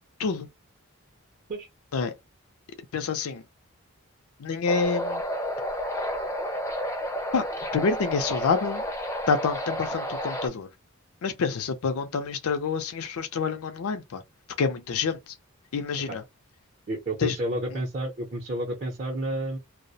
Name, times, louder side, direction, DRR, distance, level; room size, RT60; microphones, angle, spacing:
voice 1, 2.9-3.4 4.4-5.2 7.3-7.5 7.7-8.8 9.3-10.7 11.2-14.2 14.6-15.3 15.7-16.2 17.2-17.4, left 5 dB, 80° left, 0.4 m, -27 dB
sound 1, 4.7-10.5, equal, 15° left, 0.4 m, -31 dB
voice 2, 16.9-19.6, right 1 dB, 40° right, 0.5 m, -30 dB
2.3 x 2.0 x 2.6 m
head